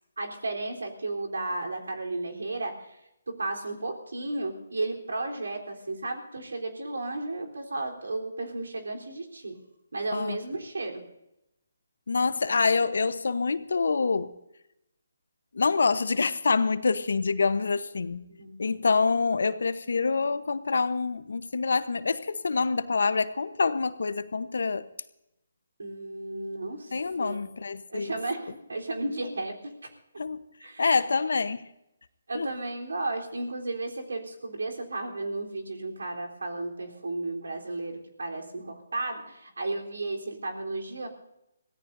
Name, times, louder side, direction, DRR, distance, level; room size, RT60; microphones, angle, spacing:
voice 1, 0.2-3.0 3.3-9.6 9.9-11.0 12.4-12.5 18.4-18.6 25.8-26.9 27.2-29.9 30.6-31.0 32.3-41.1, right 2 dB, 80° right, 2 dB, 3.8 m, -34 dB
voice 2, 12.1-14.3 15.5-18.2 18.6-24.8 26.9-28.1 30.2-30.4 30.8-31.7 32.3-32.5, left 4 dB, 75° left, 14 dB, 1.0 m, -26 dB
24.0 x 17.0 x 2.7 m, 0.84 s
hypercardioid pair, 155°, 0 cm